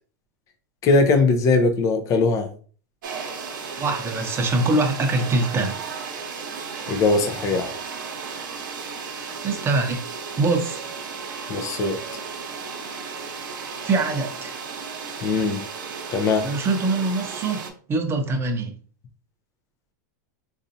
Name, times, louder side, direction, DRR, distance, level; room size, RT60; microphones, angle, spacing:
voice 1, 0.8-2.5 6.9-7.7 11.5-12.0 15.2-15.6 16.1-16.5, left 3 dB, 30° left, 6 dB, 0.6 m, -20 dB
sound 1, 3.0-17.7, right 5 dB, 75° right, 0.8 m, -34 dB
voice 2, 3.8-5.8 9.4-10.0 10.4-10.8 13.8-14.6 16.4-18.7, right 3 dB, 25° right, 5 dB, 0.7 m, -23 dB
4.1 x 2.6 x 2.7 m, 0.42 s
hypercardioid pair, 125°, 10 cm